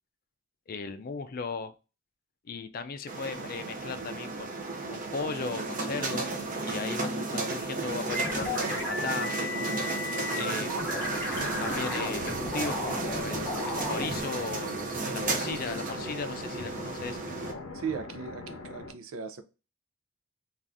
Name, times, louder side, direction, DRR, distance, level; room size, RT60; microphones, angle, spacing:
voice 1, 0.7-1.7 2.5-6.3 6.6-9.7 10.3-10.9 11.6-17.6, left 4 dB, 45° left, 0.4 m, -37 dB
sound 1, 3.1-17.5, right 3 dB, 40° right, 0.6 m, -34 dB
sound 2, 8.1-14.2, left 2 dB, 10° left, 0.7 m, -34 dB
sound 3, 10.9-18.9, left 2 dB, 85° left, 0.7 m, -42 dB
voice 2, 17.7-19.4, right 6 dB, 90° right, 0.5 m, -37 dB
2.6 x 2.4 x 3.4 m
head